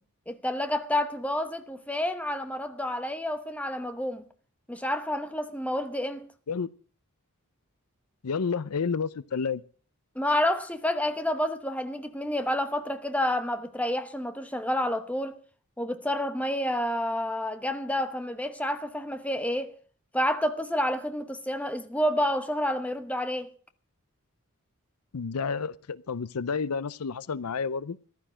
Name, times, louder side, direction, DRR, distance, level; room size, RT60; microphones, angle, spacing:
voice 1, 0.3-4.2 4.7-6.3 10.1-15.4 15.8-19.7 20.1-23.5, left 1 dB, 5° left, 1.0 m, -29 dB
voice 2, 8.2-9.6 25.1-28.0, left 5 dB, 85° left, 0.6 m, -30 dB
14.5 x 12.0 x 6.2 m
head